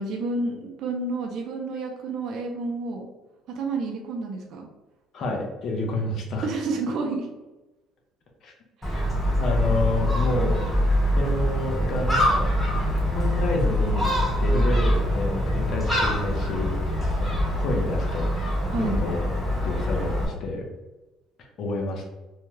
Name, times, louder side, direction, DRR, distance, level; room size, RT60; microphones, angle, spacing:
voice 1, 0.0-3.1 3.5-4.7 6.4-7.3 8.8-9.2 18.7-19.0, right 3 dB, 60° right, 1 dB, 0.5 m, -30 dB
voice 2, 5.1-6.5 8.4-8.5 9.4-10.7 11.1-12.5 13.1-16.7 17.2-18.3 18.8-19.2 19.6-20.6 21.6-22.1, left 2 dB, 55° left, 0 dB, 0.8 m, -29 dB
Gull seagull, 8.8-20.3, equal, 10° left, 1.1 m, -24 dB
2.7 x 2.3 x 3.1 m, 1.1 s
cardioid pair, 110°, 0 cm